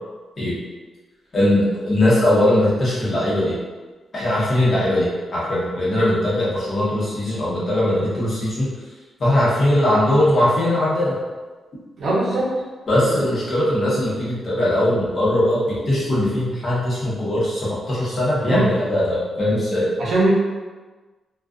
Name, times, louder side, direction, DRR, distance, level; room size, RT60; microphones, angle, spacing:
voice 1, 1.3-3.6 4.1-8.7 9.2-11.2 12.9-19.9, left 1 dB, 40° left, -8 dB, 0.9 m, -20 dB
voice 2, 12.0-12.5 18.4-18.7 20.0-20.3, right 2 dB, 55° right, -6 dB, 0.7 m, -20 dB
2.4 x 2.3 x 2.4 m, 1.3 s
wide cardioid pair, 150°, 0 cm